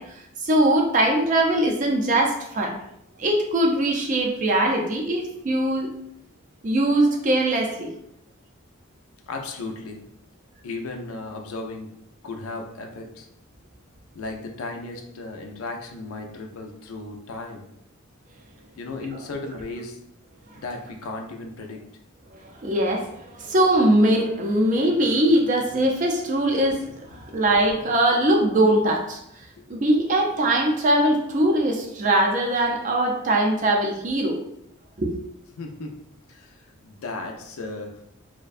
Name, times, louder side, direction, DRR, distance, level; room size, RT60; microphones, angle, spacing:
voice 1, 0.0-2.8 3.2-5.9 6.6-7.9 22.3-29.2 29.7-34.4 35.0-35.1, right 1 dB, 35° right, 1 dB, 0.4 m, -21 dB
voice 2, 9.3-10.0 10.6-11.9 12.2-13.3 14.1-17.7 18.7-20.0 20.6-21.9 27.1-27.3 29.6-29.7 35.5-36.0 36.3-38.0, left 3 dB, 80° left, 3 dB, 0.4 m, -35 dB
2.5 x 2.1 x 2.4 m, 0.75 s
head